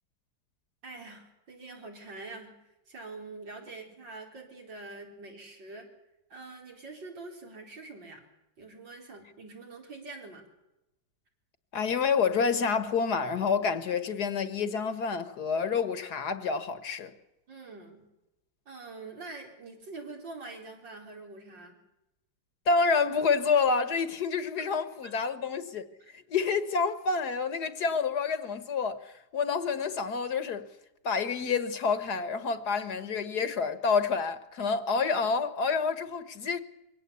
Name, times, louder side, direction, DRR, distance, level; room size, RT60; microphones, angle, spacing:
voice 1, 0.8-5.9 6.3-8.2 8.6-10.4 17.5-18.0 18.7-21.8 25.0-25.1 26.0-26.1 26.4-26.5, right 3 dB, 70° right, 4.9 m, -45 dB
voice 2, 11.7-17.1 22.6-30.7 31.0-36.6, left 5 dB, 60° left, 1.7 m, -28 dB
23.5 x 17.0 x 8.3 m
omnidirectional pair, 2.1 m